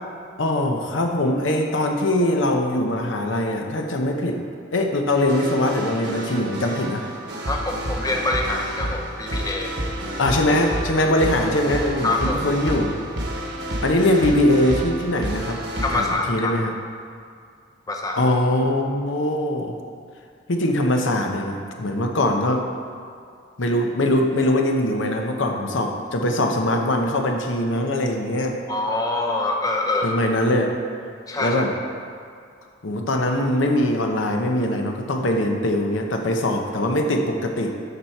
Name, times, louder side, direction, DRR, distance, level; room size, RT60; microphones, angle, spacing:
voice 1, 0.4-4.4 4.7-7.1 10.2-13.0 13.8-15.6 15.9-16.7 18.2-19.7 20.5-22.7 23.6-28.6 30.0-30.8 31.4-31.7 32.8-37.9, left 1 dB, 75° left, 3 dB, 0.8 m, -22 dB
sound 1, 5.1-16.1, right 1 dB, 55° right, 1.1 m, -30 dB
voice 2, 7.5-9.7 12.0-12.4 15.8-16.6 17.9-18.2 28.7-30.1 31.3-31.6, left 2 dB, 20° left, 1 dB, 0.5 m, -25 dB
12.0 x 4.3 x 4.5 m, 2.3 s
head